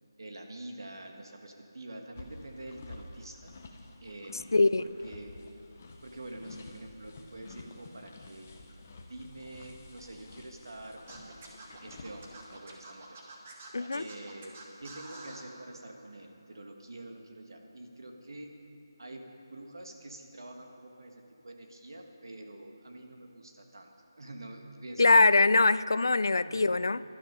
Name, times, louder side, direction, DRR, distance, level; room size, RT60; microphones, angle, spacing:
voice 1, 0.2-3.5 4.0-5.5 6.0-8.5 9.0-11.4 11.8-13.2 13.9-14.5 14.8-18.6 19.0-25.4 26.4-26.9, right 1 dB, 65° right, 3 dB, 1.8 m, -46 dB
sound 1, 2.1-12.6, left 3 dB, 20° left, 0.8 m, -50 dB
voice 2, 4.5-4.8 13.7-14.0 25.0-27.0, left 3 dB, 60° left, 17 dB, 0.4 m, -23 dB
Scratching (performance technique), 11.1-15.5, right 3 dB, 20° right, 1.0 m, -47 dB
15.5 x 12.0 x 5.5 m, 2.9 s
figure-of-eight pair, 180°, 2 cm